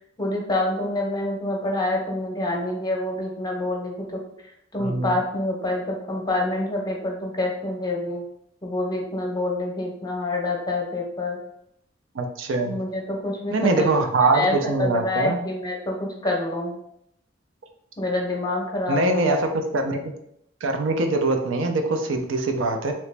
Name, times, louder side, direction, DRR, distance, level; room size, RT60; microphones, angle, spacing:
voice 1, 0.2-4.2 4.7-8.2 8.6-11.4 12.6-13.9 14.3-16.8 18.0-19.4, left 2 dB, 20° left, -1 dB, 0.7 m, -27 dB
voice 2, 4.8-5.2 12.2-12.8 13.5-15.4 18.9-19.4 19.7-20.0 20.6-22.9, right 3 dB, 80° right, 4 dB, 0.5 m, -23 dB
3.0 x 2.9 x 3.3 m, 0.75 s
head